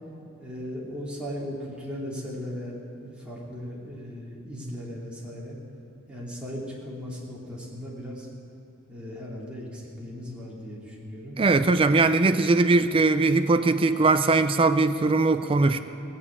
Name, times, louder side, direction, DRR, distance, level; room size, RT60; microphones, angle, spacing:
voice 1, 0.4-5.6 6.1-8.3 8.9-11.4, equal, 5° right, -5 dB, 2.6 m, -37 dB
voice 2, 11.4-15.8, right 3 dB, 25° right, 9 dB, 0.4 m, -20 dB
18.0 x 7.1 x 8.4 m, 3.0 s
head